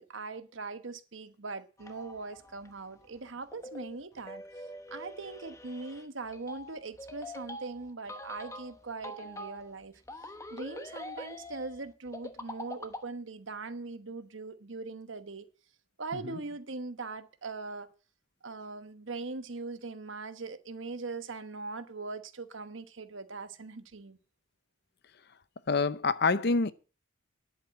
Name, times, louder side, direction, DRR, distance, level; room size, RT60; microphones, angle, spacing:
voice 1, 0.0-4.4 4.9-10.0 10.5-15.5 16.0-17.9 18.4-24.2, right 3 dB, 70° right, 1.2 m, -41 dB
sound 1, 1.8-13.1, left 1 dB, 15° left, 1.0 m, -45 dB
voice 2, 25.7-26.7, left 4 dB, 55° left, 0.7 m, -26 dB
10.5 x 8.2 x 7.5 m
head